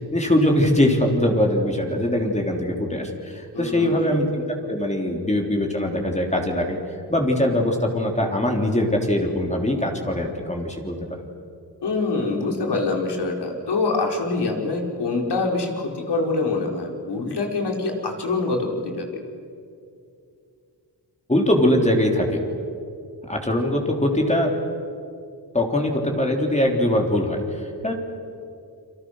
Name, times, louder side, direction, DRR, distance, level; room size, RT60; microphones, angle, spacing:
voice 1, 0.1-6.8 7.1-11.3 21.3-22.4 23.3-24.5 25.5-27.9, left 1 dB, 15° left, 1 dB, 3.7 m, -22 dB
voice 2, 3.5-4.2 11.8-18.7 19.0-19.1, left 3 dB, 70° left, 1 dB, 4.6 m, -25 dB
30.0 x 24.5 x 6.6 m, 2.4 s
cardioid pair, 85°, 43 cm